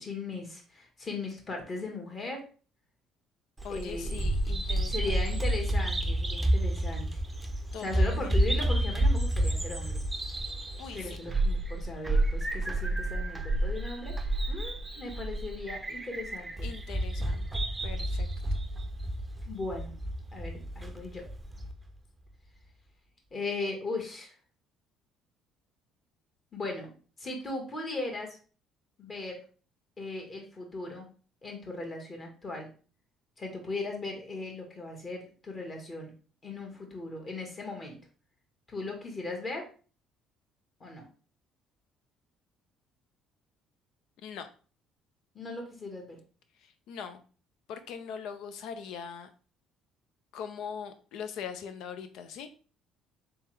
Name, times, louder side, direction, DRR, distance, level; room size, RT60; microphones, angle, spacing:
voice 1, 0.0-2.4 3.7-4.2 4.9-7.1 7.8-10.0 10.9-14.2 14.5-16.7 19.4-19.9 20.3-21.3 23.3-24.3 26.5-26.9 27.2-28.4 29.0-29.4 30.0-31.1 31.4-32.7 33.4-36.1 36.4-38.0 38.7-39.6 40.8-41.1 45.3-46.2, left 2 dB, 35° left, 2 dB, 1.4 m, -38 dB
voice 2, 3.6-5.1 7.7-8.3 10.8-11.2 16.6-17.4 17.8-18.3 44.2-44.5 46.9-47.2 47.7-49.3 50.3-52.5, left 7 dB, 75° left, 9 dB, 0.6 m, -41 dB
Bird vocalization bird call bird song, 3.6-21.7, right 1 dB, 15° right, 0.6 m, -30 dB
3.5 x 3.4 x 3.2 m, 0.38 s
cardioid pair, 100°, 0 cm